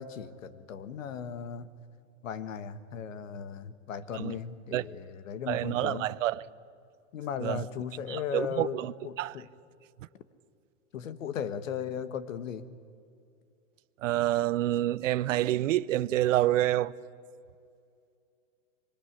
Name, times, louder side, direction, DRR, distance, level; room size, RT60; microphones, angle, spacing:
voice 1, 0.0-1.7 2.2-6.1 7.1-9.5 10.9-12.7, left 7 dB, 90° left, 1.6 m, -37 dB
voice 2, 5.5-6.4 7.4-7.6 8.1-8.9 9.2-9.3 14.0-16.9, right 14 dB, 75° right, 0.8 m, -27 dB
24.0 x 20.5 x 9.7 m
supercardioid pair, 150°, 38 cm